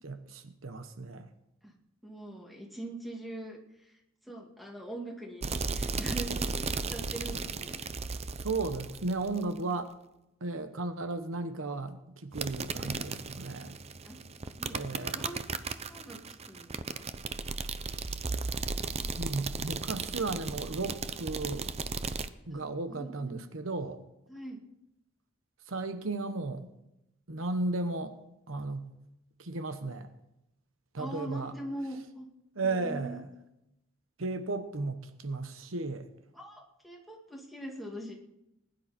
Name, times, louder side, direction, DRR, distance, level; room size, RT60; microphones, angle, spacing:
voice 1, 0.0-1.3 8.4-9.9 10.4-13.8 14.7-15.3 19.2-21.7 22.5-24.0 25.7-26.7 27.3-28.1 28.5-28.9 29.4-30.1 30.9-31.5 32.5-33.3 34.2-36.1, right 3 dB, 80° right, 9 dB, 1.1 m, -35 dB
voice 2, 2.0-3.9 4.2-7.8 12.7-13.0 14.0-14.2 14.6-15.4 15.7-17.0 22.5-22.6 22.9-23.4 24.3-24.6 31.0-32.3 32.6-33.2 36.3-38.1, right 1 dB, ahead, 0 dB, 2.4 m, -42 dB
sound 1, 5.4-9.6 12.3-22.3, right 4 dB, 30° right, 0.6 m, -35 dB
20.0 x 11.0 x 4.4 m, 0.87 s
head